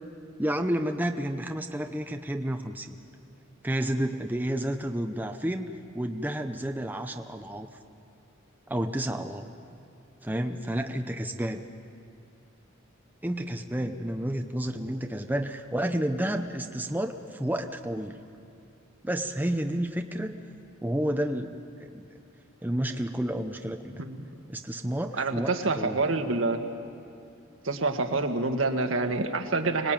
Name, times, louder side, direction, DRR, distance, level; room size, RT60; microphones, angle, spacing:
voice 1, 0.4-3.0 3.6-7.7 8.7-9.5 10.2-11.6 13.2-18.2 19.0-20.4 20.8-22.0 22.6-24.0 24.5-26.0, right 1 dB, 10° right, 5 dB, 0.7 m, -30 dB
voice 2, 25.2-26.6 27.6-29.9, right 3 dB, 75° right, 4 dB, 1.7 m, -27 dB
25.0 x 19.5 x 9.0 m, 2.5 s
head